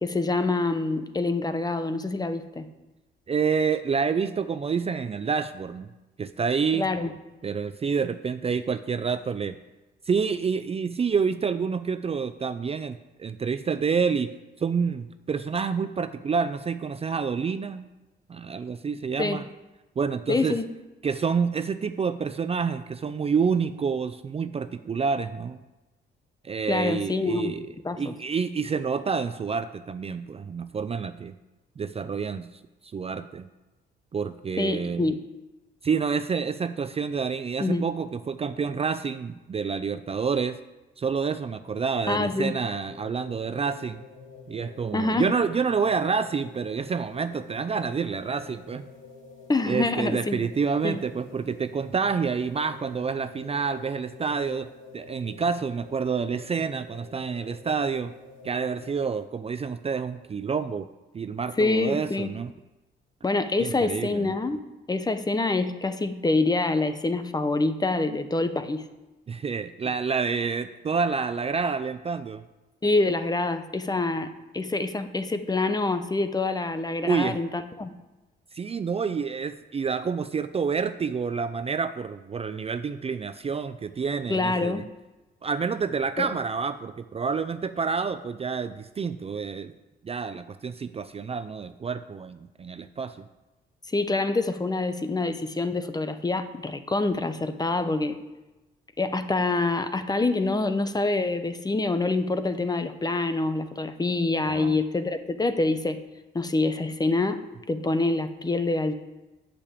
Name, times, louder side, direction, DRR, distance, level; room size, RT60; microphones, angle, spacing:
voice 1, 0.0-2.7 6.7-7.1 19.2-19.4 20.3-20.7 26.7-27.6 27.8-28.1 34.6-35.2 37.6-37.8 42.1-42.6 44.9-45.4 49.5-50.5 50.8-51.0 61.6-62.3 63.2-64.6 64.9-68.8 72.8-77.9 84.3-84.8 86.2-86.3 93.9-98.2 99.0-106.0 106.3-107.4 107.7-108.9, left 3 dB, 20° left, 10 dB, 0.8 m, -26 dB
voice 2, 3.3-5.9 6.2-6.9 7.4-9.6 10.1-14.3 14.6-17.9 18.3-19.4 20.0-20.6 21.0-25.6 26.4-27.7 28.0-31.3 31.8-32.5 32.8-33.5 34.1-35.1 35.8-40.6 41.0-44.0 44.5-48.8 49.7-54.7 54.9-58.1 58.4-60.9 61.1-62.5 63.6-64.3 69.3-72.4 77.0-77.4 78.5-84.8 85.4-89.7 90.0-93.2 104.5-104.8, right 5 dB, 30° right, 11 dB, 0.5 m, -28 dB
sound 1, 41.7-59.2, left 4 dB, 75° left, 2.6 m, -47 dB
8.7 x 6.9 x 8.5 m, 1.1 s
cardioid pair, 90°, 20 cm